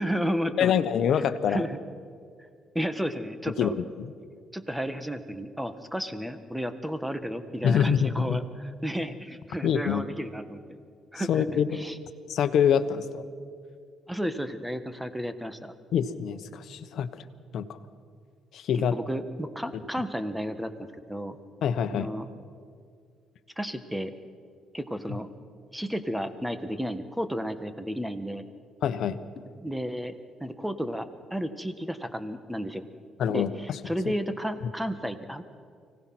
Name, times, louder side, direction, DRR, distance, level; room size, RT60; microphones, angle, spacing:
voice 1, 0.0-0.7 1.1-1.8 2.7-3.7 4.5-10.8 11.1-12.0 14.1-15.7 18.7-21.4 21.9-22.3 23.6-24.1 24.7-25.3 25.7-28.4 29.6-30.1 30.4-32.9 33.3-35.4, equal, 5° right, 10 dB, 1.6 m, -32 dB
voice 2, 0.6-1.6 3.6-3.7 4.0-4.1 7.6-8.4 9.6-10.0 11.2-11.7 12.3-13.2 15.9-17.2 17.5-17.8 18.5-18.9 21.6-22.1 28.8-29.2 33.2-33.8, left 8 dB, 70° left, 11 dB, 1.1 m, -25 dB
25.0 x 18.0 x 6.1 m, 2.2 s
supercardioid pair, 75°, 0 cm